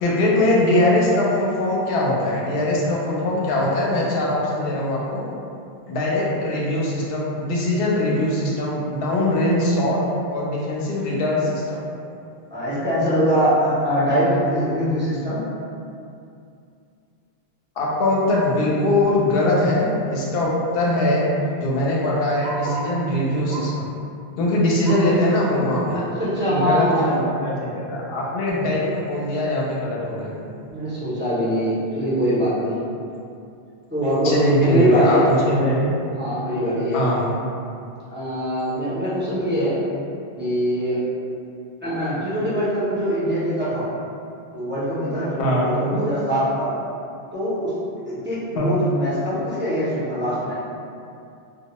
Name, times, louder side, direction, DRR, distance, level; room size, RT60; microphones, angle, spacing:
voice 1, 0.0-5.3 5.9-10.0 10.3-11.8 17.8-21.3 21.6-23.9 24.4-26.0 26.5-30.3 34.2-35.9 36.9-37.3 45.4-46.0 48.6-48.7, left 1 dB, 70° left, -4 dB, 0.8 m, -21 dB
voice 2, 12.5-15.4 21.4-21.5 24.8-25.2 25.9-27.2 28.6-28.8 30.7-32.8 33.9-35.3 36.2-37.1 38.1-39.8 40.4-41.0 41.8-43.9 44.5-46.7 47.3-47.7 48.1-50.6, equal, 15° right, -12 dB, 0.4 m, -23 dB
Bark, 21.5-23.0 23.4-23.9 24.2-25.2 25.7-25.8 26.2-26.3 27.0-27.1, right 1 dB, 80° right, 0.8 m, -35 dB
2.2 x 2.1 x 2.8 m, 2.5 s
omnidirectional pair, 1.0 m